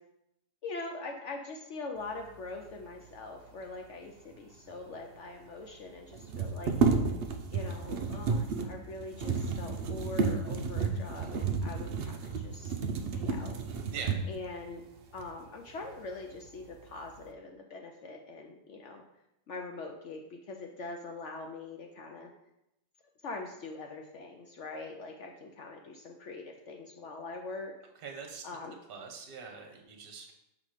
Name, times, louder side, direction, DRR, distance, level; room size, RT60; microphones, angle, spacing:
voice 1, 0.6-6.8 7.5-12.8 13.1-13.6 14.3-14.8 15.1-19.0 19.5-22.3 23.2-27.8 28.4-28.8, left 3 dB, 65° left, 2 dB, 0.7 m, -43 dB
sound 1, 4.7-4.8 4.9-5.0 6.1-14.5 15.2-15.3 15.7-16.4 16.7-17.3, right 5 dB, 85° right, 0.5 m, -32 dB
voice 2, 28.0-28.4 28.9-30.3, right 5 dB, 40° right, 3 dB, 1.0 m, -42 dB
6.1 x 3.8 x 4.9 m, 0.85 s
omnidirectional pair, 1.8 m